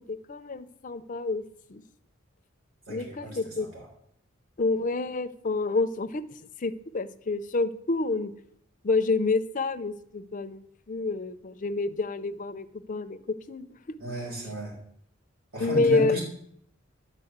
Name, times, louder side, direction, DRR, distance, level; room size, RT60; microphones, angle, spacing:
voice 1, 0.1-1.4 1.7-1.8 2.9-3.7 4.6-6.2 6.6-8.3 8.8-10.6 10.9-13.2 13.5-13.6 15.6-16.2, left 3 dB, 40° left, 10 dB, 0.5 m, -28 dB
voice 2, 2.9-3.9 14.0-14.7 15.5-16.2, equal, 65° right, -2 dB, 4.2 m, -34 dB
11.0 x 4.3 x 7.9 m, 0.71 s
head